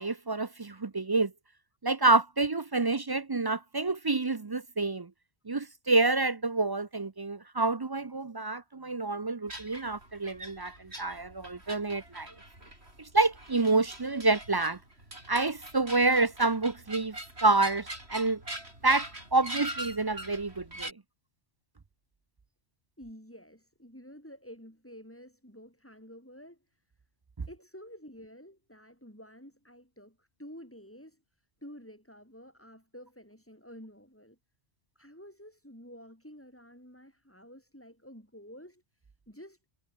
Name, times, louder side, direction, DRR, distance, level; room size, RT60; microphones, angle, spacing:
voice 1, 0.0-1.3 1.8-5.1 5.5-12.3 13.0-14.8 15.3-18.4 18.8-19.1 19.3-20.9 27.4-27.5, right 3 dB, 30° right, 0.4 m, -28 dB
sound 1, 9.5-20.9, right 1 dB, 65° right, 8.2 m, -43 dB
voice 2, 23.0-26.8 27.5-34.4 35.0-39.7, equal, 10° left, 7.0 m, -50 dB
omnidirectional pair, 1.2 m